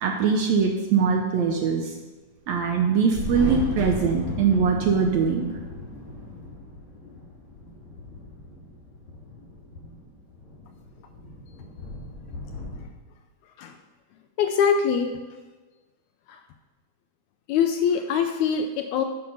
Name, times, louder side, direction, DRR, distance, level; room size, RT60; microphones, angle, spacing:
voice 1, 0.0-1.9 2.5-5.5, right 5 dB, 75° right, 2 dB, 1.7 m, -22 dB
Thunder, 3.0-12.8, left 1 dB, 60° left, 4.7 m, -36 dB
voice 2, 14.4-15.2 17.5-19.0, left 7 dB, 80° left, 6 dB, 1.8 m, -23 dB
9.2 x 5.7 x 5.6 m, 1.3 s
omnidirectional pair, 3.7 m